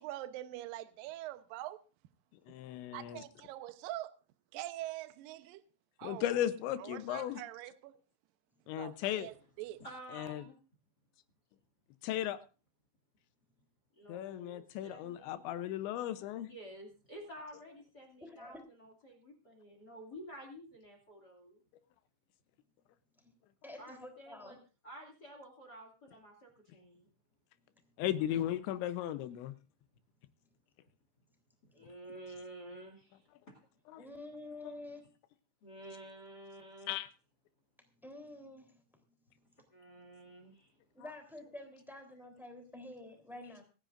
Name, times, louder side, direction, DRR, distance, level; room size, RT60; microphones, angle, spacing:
voice 1, 0.0-1.8 2.9-4.2 4.5-5.6 6.0-6.3 6.8-7.9 8.7-9.8, right 15 dB, 85° right, 2.0 m, -44 dB
voice 2, 2.5-3.2 6.0-7.4 8.7-9.3 10.1-10.4 12.0-12.4 14.1-16.5 28.0-29.5 33.9-34.0 34.6-34.7 36.9-37.1, left 12 dB, 80° left, 3.0 m, -36 dB
voice 3, 9.8-10.6 14.0-15.4 16.4-21.6 23.8-24.6 24.8-27.0 31.7-33.2 35.6-36.9 39.7-40.7, right 1 dB, 30° left, 2.0 m, -51 dB
voice 4, 18.2-18.6 23.2-23.3 23.6-24.6 34.0-35.0 38.0-38.8 40.9-43.6, left 2 dB, ahead, 2.5 m, -48 dB
26.5 x 10.0 x 2.6 m
omnidirectional pair, 5.3 m